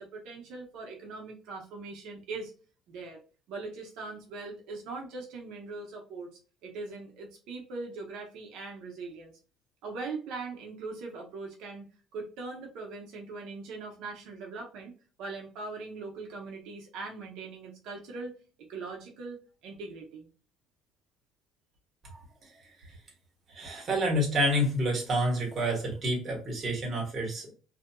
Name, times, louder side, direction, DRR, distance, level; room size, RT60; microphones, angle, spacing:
voice 1, 0.0-2.5 2.9-3.2 3.5-6.3 6.6-9.3 9.8-18.3 18.7-20.3, right 3 dB, 75° right, 0 dB, 0.8 m, -41 dB
voice 2, 22.0-23.0 23.5-27.5, equal, 30° right, -2 dB, 1.2 m, -29 dB
2.7 x 2.5 x 2.2 m, 0.37 s
cardioid pair, 155°, 0 cm